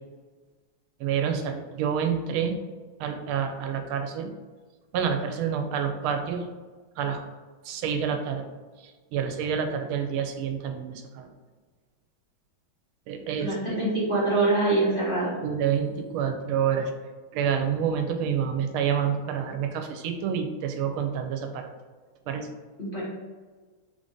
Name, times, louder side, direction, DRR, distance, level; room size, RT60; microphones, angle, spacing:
voice 1, 1.0-2.5 3.0-4.3 4.9-6.4 7.0-7.2 7.6-8.4 9.1-11.3 13.1-13.8 15.4-16.9 17.3-21.7 22.3-22.5, right 7 dB, 90° right, 5 dB, 1.4 m, -28 dB
voice 2, 13.4-15.3 22.8-23.0, right 2 dB, 35° left, -9 dB, 0.9 m, -24 dB
3.5 x 2.5 x 3.7 m, 1.4 s
omnidirectional pair, 2.2 m